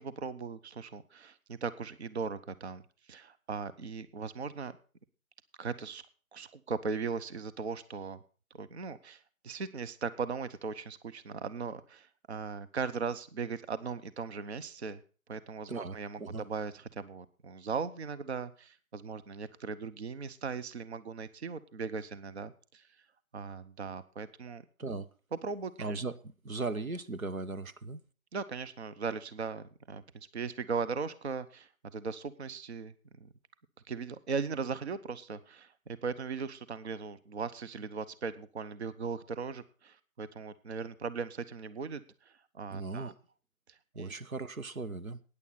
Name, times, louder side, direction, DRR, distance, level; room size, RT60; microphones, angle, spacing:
voice 1, 0.0-2.8 3.1-4.8 5.6-6.0 6.3-8.2 8.5-15.0 15.3-22.9 23.3-24.6 25.4-26.0 28.3-32.9 33.2-33.3 33.9-43.1 44.0-44.1, right 5 dB, 50° right, 0.9 m, -38 dB
voice 2, 15.7-16.4 24.8-25.1 25.8-28.0 42.7-43.1 43.9-45.2, right 3 dB, 80° right, 1.1 m, -38 dB
14.0 x 9.9 x 4.1 m
figure-of-eight pair, 145°, 41 cm